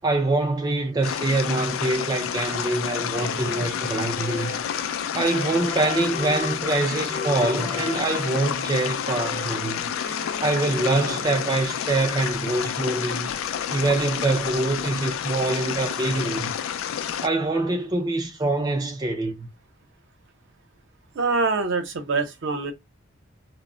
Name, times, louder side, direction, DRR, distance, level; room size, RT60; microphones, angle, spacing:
voice 1, 0.0-4.5 5.1-9.9 10.4-13.3 13.7-16.5 17.2-19.5, right 2 dB, 20° right, 0.3 m, -25 dB
sound 1, 1.0-17.3, left 9 dB, 75° left, 0.3 m, -29 dB
Wind instrument woodwind instrument, 3.1-11.6, left 3 dB, 55° left, 0.8 m, -36 dB
voice 2, 21.1-22.7, right 4 dB, 65° right, 0.6 m, -24 dB
2.0 x 2.0 x 3.6 m
head